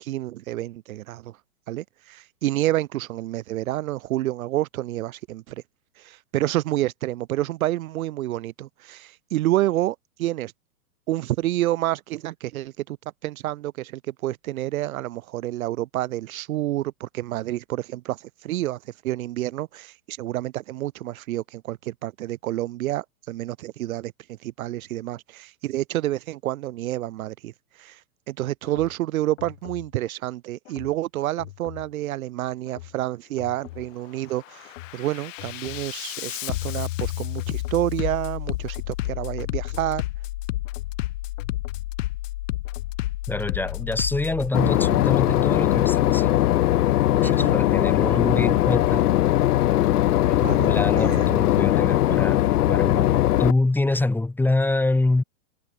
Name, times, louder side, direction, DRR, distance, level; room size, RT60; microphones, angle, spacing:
voice 1, 0.0-1.3 1.7-5.5 6.0-10.5 11.1-13.0 13.2-18.8 19.0-24.1 24.4-27.5 27.8-28.0 28.3-40.0 47.2-47.5 50.4-51.3, right 15 dB, 60° right, 1.1 m, -29 dB
Bass drum, 28.7-28.9 29.4-29.9 30.7-30.9 31.4-31.9 32.7-32.9 33.4-33.9 34.3-44.5, left 17 dB, 55° left, 0.7 m, -31 dB
voice 2, 43.3-46.5 47.1-49.1 50.2-55.2, left 2 dB, 5° left, 1.9 m, -26 dB
Boat Water vehicle / Engine, 44.5-53.5, left 14 dB, 75° left, 1.0 m, -20 dB
hypercardioid pair, 145°, 46 cm